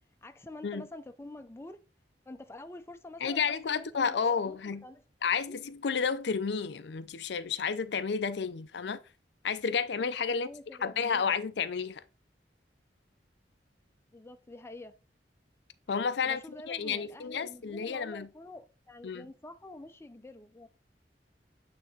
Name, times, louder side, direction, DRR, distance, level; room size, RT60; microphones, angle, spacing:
voice 1, 0.2-1.8 2.3-5.0 5.4-5.6 10.3-11.2 14.1-14.9 16.2-20.7, left 2 dB, 15° left, 0.5 m, -47 dB
voice 2, 3.2-4.8 5.2-9.0 9.4-10.5 10.8-12.0 15.9-16.4 16.7-18.3 19.0-19.2, left 6 dB, 70° left, 0.5 m, -31 dB
9.1 x 3.4 x 4.0 m
head